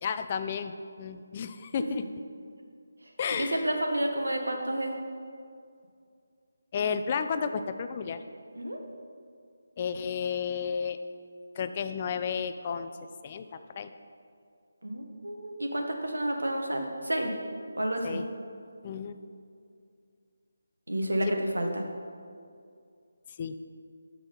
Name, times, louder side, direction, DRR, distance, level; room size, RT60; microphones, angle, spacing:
voice 1, 0.0-2.0 3.2-3.7 6.7-8.2 9.8-11.0 11.6-12.9 13.2-13.5 13.8-13.9 18.0-18.3 18.8-19.2 23.4-23.6, left 6 dB, 30° left, 9 dB, 0.3 m, -32 dB
voice 2, 3.4-4.9 8.5-8.8 14.8-17.3 17.8-18.2 20.9-21.8, right 1 dB, 90° right, 3 dB, 1.1 m, -30 dB
6.2 x 6.0 x 5.1 m, 2.3 s
figure-of-eight pair, 160°, 0 cm